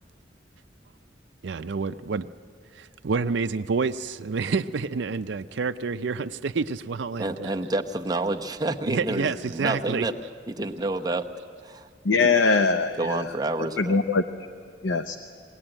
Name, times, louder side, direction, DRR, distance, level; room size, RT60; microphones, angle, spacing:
voice 1, 1.4-2.3 2.7-7.6 8.8-10.1, right 4 dB, 75° right, 0.5 m, -28 dB
voice 2, 7.2-10.1 10.5-11.3 11.6-11.9 12.2-12.3 13.0-14.0, right 2 dB, 20° right, 0.8 m, -29 dB
voice 3, 12.0-13.2 13.8-14.2 14.8-15.2, left 4 dB, 85° left, 0.7 m, -22 dB
21.5 x 17.5 x 8.9 m
head